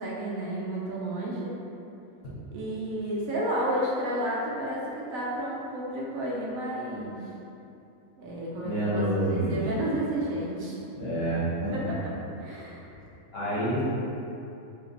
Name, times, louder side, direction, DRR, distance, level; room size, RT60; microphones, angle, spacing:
voice 1, 0.0-1.5 2.5-7.3 8.2-10.8 11.7-12.1 12.4-12.8 13.5-13.7, right 1 dB, 70° right, -5 dB, 1.1 m, -31 dB
voice 2, 8.6-9.6 10.9-11.7 13.3-13.8, right 1 dB, 50° left, -9 dB, 1.1 m, -27 dB
3.3 x 2.8 x 4.0 m, 2.7 s
omnidirectional pair, 1.5 m